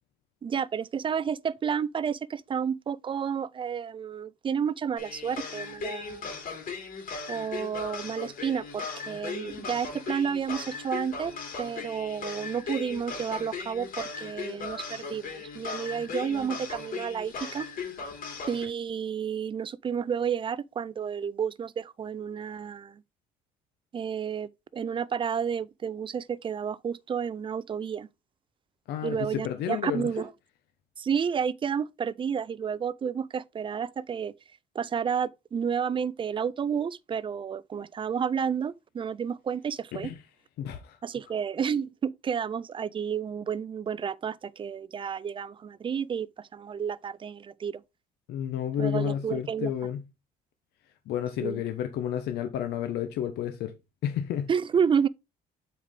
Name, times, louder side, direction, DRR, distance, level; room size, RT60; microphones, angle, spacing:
voice 1, 0.4-6.3 7.3-17.7 18.5-23.0 23.9-28.1 29.0-30.3 31.0-34.3 34.7-40.1 41.0-47.8 48.8-49.7 51.4-51.6 54.5-55.1, right 7 dB, 30° right, 0.4 m, -31 dB
sound 1, 5.0-18.7, left 5 dB, 55° left, 2.9 m, -38 dB
voice 2, 28.9-30.1 39.9-40.2 40.6-41.0 48.3-50.0 51.1-53.7 54.0-54.5, left 10 dB, 75° left, 1.0 m, -31 dB
7.8 x 4.8 x 3.7 m
cardioid pair, 110°, 17 cm